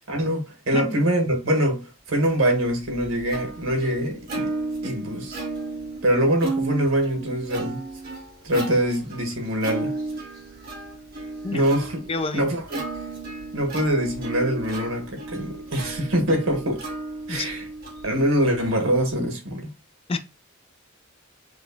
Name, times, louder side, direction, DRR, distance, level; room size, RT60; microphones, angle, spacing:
voice 1, 0.1-4.5 4.8-5.4 6.0-7.8 8.4-9.9 11.5-12.0 12.3-12.8 13.5-16.9 17.3-17.6 18.0-19.7, right 1 dB, 80° right, 1.4 m, -24 dB
Plucked string instrument, 2.4-19.1, right 3 dB, 50° right, 2.2 m, -34 dB
voice 2, 12.1-12.5 17.3-17.5 20.1-20.2, left 3 dB, 30° left, 0.4 m, -28 dB
4.9 x 2.3 x 3.9 m
head